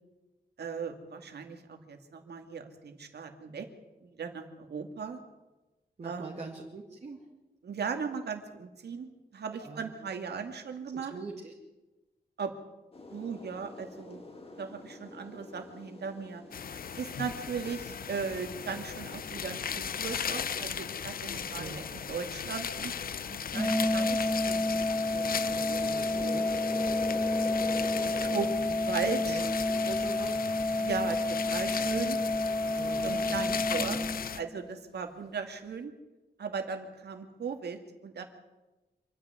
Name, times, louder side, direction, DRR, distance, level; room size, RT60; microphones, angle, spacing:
voice 1, 0.6-3.7 4.0-5.2 6.0-6.5 7.6-11.1 12.4-12.5 13.1-14.2 14.6-16.4 17.0-24.9 25.1-26.5 28.2-28.5 28.8-29.4 30.8-32.2 33.0-34.0 34.3-35.9 36.4-38.2, right 6 dB, 75° right, 5 dB, 2.4 m, -38 dB
voice 2, 6.0-7.2 9.6-9.9 11.1-11.5 21.6-21.8 28.7-28.8 29.3-30.4 32.7-34.1, right 4 dB, 40° right, -1 dB, 2.4 m, -43 dB
sound 1, 12.9-28.5, left 2 dB, 35° left, 2.4 m, -47 dB
sound 2, 16.5-34.4, left 7 dB, 60° left, 0.7 m, -37 dB
Organ, 23.5-34.6, left 2 dB, 5° left, 1.0 m, -30 dB
26.5 x 10.5 x 9.7 m, 1.1 s
wide cardioid pair, 175°, 17 cm